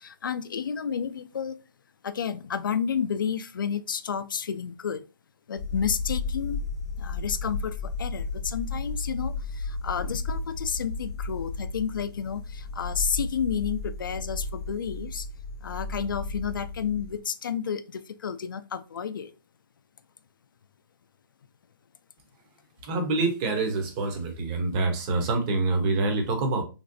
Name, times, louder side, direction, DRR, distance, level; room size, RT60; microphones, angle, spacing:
voice 1, 0.0-1.5 2.0-5.0 5.5-6.6 7.0-15.3 15.6-17.8 18.2-19.3, left 7 dB, 65° left, 12 dB, 0.4 m, -31 dB
sound 1, 5.6-17.2, left 3 dB, 45° left, 0.7 m, -33 dB
voice 2, 22.8-26.6, right 3 dB, 15° right, 4 dB, 0.5 m, -26 dB
3.0 x 2.6 x 2.5 m, 0.32 s
hypercardioid pair, 160°, 12 cm